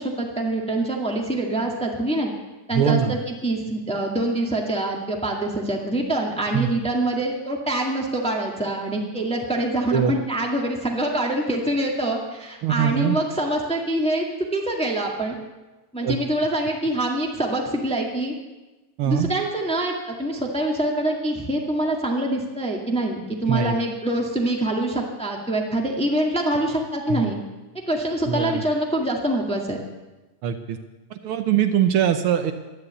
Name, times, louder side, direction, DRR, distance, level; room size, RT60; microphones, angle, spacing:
voice 1, 0.0-2.3 2.7-3.0 3.3-14.2 14.5-15.4 15.9-18.3 19.0-27.4 27.9-29.8, right 1 dB, 5° left, 0 dB, 1.1 m, -25 dB
voice 2, 2.7-3.2 6.5-6.7 9.9-10.1 12.6-13.2 16.0-16.2 19.0-19.3 23.5-23.8 27.1-27.3 28.2-28.6 30.4-30.8 31.1-32.5, right 9 dB, 75° right, 8 dB, 1.3 m, -22 dB
13.0 x 11.0 x 8.1 m, 1.1 s
omnidirectional pair, 3.3 m